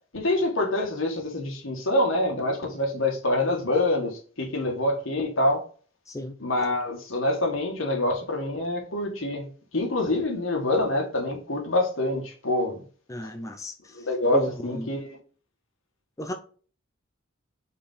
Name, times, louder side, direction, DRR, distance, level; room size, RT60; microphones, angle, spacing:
voice 1, 0.1-5.6 6.4-9.5 9.7-12.8 13.9-15.2, left 1 dB, 70° left, 1.9 m, -26 dB
voice 2, 13.1-13.7 14.3-14.9 16.2-16.3, equal, 15° left, 0.6 m, -33 dB
5.1 x 4.3 x 5.6 m
head